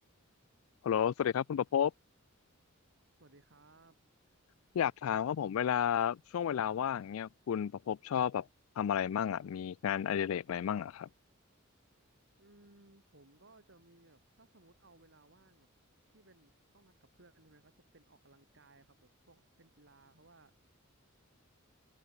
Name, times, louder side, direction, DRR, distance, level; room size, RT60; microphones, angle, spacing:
voice 1, 0.8-1.9 4.7-8.5 8.8-11.1, left 8 dB, 70° left, 0.3 m, -32 dB
voice 2, 3.2-4.0 12.4-15.7 16.1-20.7, right 2 dB, 60° right, 4.2 m, -63 dB
open air
head